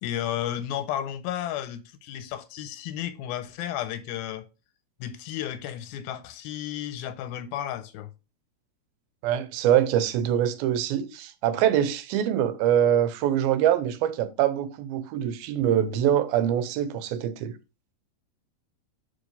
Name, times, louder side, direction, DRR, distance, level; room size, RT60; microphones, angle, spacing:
voice 1, 0.0-4.5 5.0-8.1, left 11 dB, 85° left, 2.5 m, -33 dB
voice 2, 9.2-17.5, right 10 dB, 80° right, 2.6 m, -24 dB
5.4 x 5.2 x 5.3 m
omnidirectional pair, 4.3 m